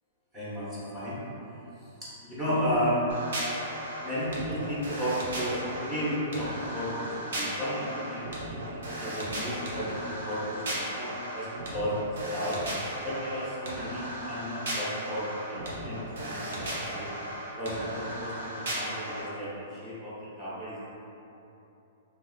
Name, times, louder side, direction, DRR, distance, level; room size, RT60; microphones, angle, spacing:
voice 1, 0.3-1.2 1.5-3.1 4.0-12.6 13.0-17.1 17.6-20.9, equal, 10° right, -11 dB, 0.9 m, -33 dB
sound 1, 3.1-19.2, right 1 dB, 75° right, 0.9 m, -36 dB
3.6 x 3.1 x 2.3 m, 2.9 s
hypercardioid pair, 150°, 0 cm